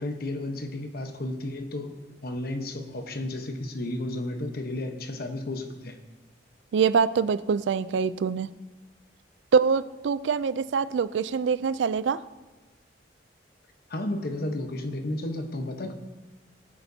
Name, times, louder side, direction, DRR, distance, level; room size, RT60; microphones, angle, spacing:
voice 1, 0.0-2.0 2.2-6.0 13.9-15.9, left 1 dB, 55° left, 1.0 m, -32 dB
voice 2, 6.7-8.5 9.5-12.2, right 6 dB, 70° right, 0.4 m, -24 dB
19.0 x 8.8 x 2.8 m
head